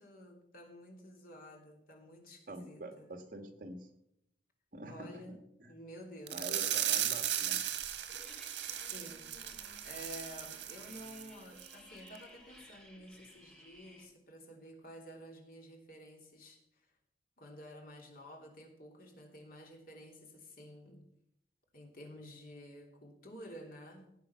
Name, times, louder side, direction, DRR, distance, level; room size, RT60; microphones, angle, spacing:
voice 1, 0.0-3.1 4.9-5.4 5.7-7.0 8.4-16.9 17.4-21.0 21.7-24.1, equal, 55° left, 1 dB, 3.3 m, -52 dB
voice 2, 2.5-3.9 4.7-5.7 6.3-7.6, right 2 dB, 50° right, 5 dB, 2.1 m, -46 dB
sound 1, 6.3-11.3 11.6-11.7 12.1-12.2, right 11 dB, 80° right, 1.5 m, -36 dB
sound 2, 8.1-14.1, equal, 5° left, 2.2 m, -58 dB
17.0 x 8.5 x 5.8 m, 0.77 s
head